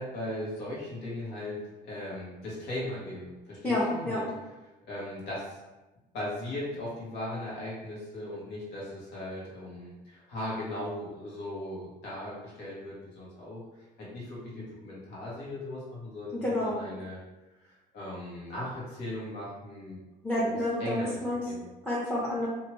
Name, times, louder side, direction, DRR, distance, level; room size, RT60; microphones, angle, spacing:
voice 1, 0.0-4.3 4.9-5.6 6.1-17.2 17.6-20.0 20.4-21.1 21.5-21.7, left 1 dB, 80° left, -6 dB, 1.3 m, -38 dB
voice 2, 3.6-4.2 16.3-16.7 20.2-21.4 21.9-22.5, left 1 dB, 5° left, -9 dB, 0.7 m, -29 dB
2.9 x 2.6 x 3.0 m, 1.1 s
cardioid pair, 110°, 17 cm